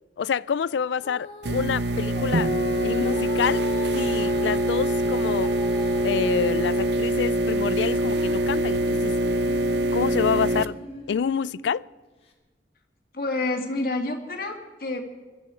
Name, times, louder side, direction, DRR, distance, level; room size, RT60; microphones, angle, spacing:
voice 1, 0.2-2.5 2.8-3.7 3.9-5.6 6.0-9.2 9.9-10.8 11.1-11.8, left 7 dB, 85° left, 0.4 m, -27 dB
Female singing, 1.0-7.0 7.4-11.7 12.3-12.4, left 2 dB, 35° left, 2.5 m, -39 dB
sound 1, 1.4-10.6, right 1 dB, 75° right, 0.7 m, -24 dB
voice 2, 13.1-15.0, left 2 dB, 55° left, 2.2 m, -28 dB
22.0 x 13.0 x 4.5 m
head